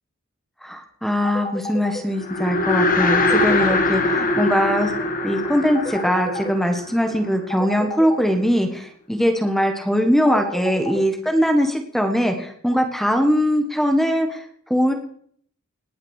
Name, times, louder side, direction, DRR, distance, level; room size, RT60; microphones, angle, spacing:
voice 1, 0.6-4.9 5.2-14.9, equal, ahead, 5 dB, 1.5 m, -21 dB
sound 1, 1.2-2.0 3.0-3.8 5.7-6.5 7.5-8.3 10.2-11.0, left 2 dB, 20° left, 1.8 m, -30 dB
sound 2, 2.2-7.6, left 2 dB, 40° left, 1.8 m, -22 dB
19.0 x 6.4 x 8.3 m, 0.62 s
head